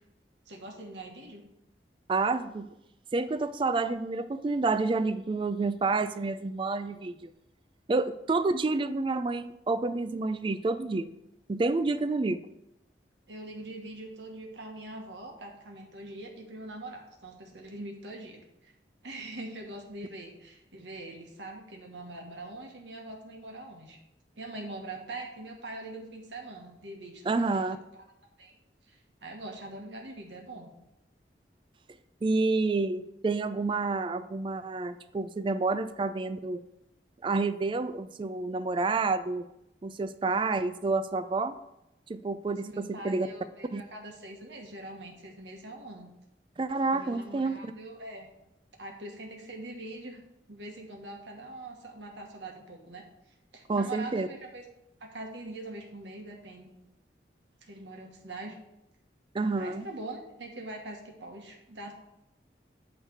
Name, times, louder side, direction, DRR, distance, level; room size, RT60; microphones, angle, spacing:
voice 1, 0.5-1.4 13.3-18.7 19.0-24.0 24.4-28.0 28.4-28.5 28.8-30.7 42.5-46.1 46.9-48.3 48.8-50.2 50.5-53.0 53.5-54.6 55.0-56.7 57.6-58.6 59.5-61.9, right 2 dB, 90° right, 1 dB, 1.3 m, -43 dB
voice 2, 2.1-2.7 3.1-7.3 7.9-11.1 11.5-12.4 27.3-27.8 32.2-36.6 37.2-39.5 39.8-41.5 42.1-43.3 43.7-43.8 46.6-47.7 53.7-54.3 59.3-59.8, right 3 dB, 30° right, 12 dB, 0.3 m, -29 dB
8.8 x 3.3 x 6.4 m, 0.87 s
head